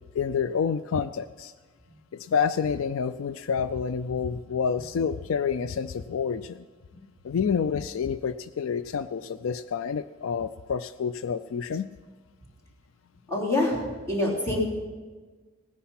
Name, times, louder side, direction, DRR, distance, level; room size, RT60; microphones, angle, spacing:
voice 1, 0.1-1.5 2.1-6.6 7.2-11.9, left 6 dB, 75° left, 14 dB, 0.4 m, -28 dB
voice 2, 13.3-13.8 14.1-14.6, left 1 dB, 15° left, -5 dB, 3.7 m, -25 dB
17.5 x 10.0 x 5.8 m, 1.4 s
head